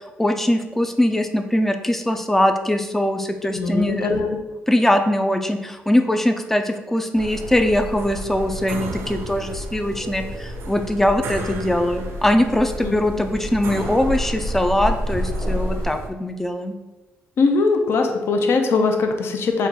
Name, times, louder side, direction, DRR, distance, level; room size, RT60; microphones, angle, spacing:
voice 1, 0.2-4.1 4.7-16.7, left 1 dB, 5° left, 6 dB, 0.3 m, -21 dB
voice 2, 3.6-4.4 12.8-13.2 17.4-19.7, left 4 dB, 65° left, 4 dB, 0.5 m, -21 dB
sound 1, 7.1-16.1, right 2 dB, 80° right, 0.5 m, -34 dB
sound 2, 7.9-15.9, left 1 dB, 20° left, 1.1 m, -31 dB
4.1 x 2.3 x 3.7 m, 1.2 s
cardioid pair, 125°, 5 cm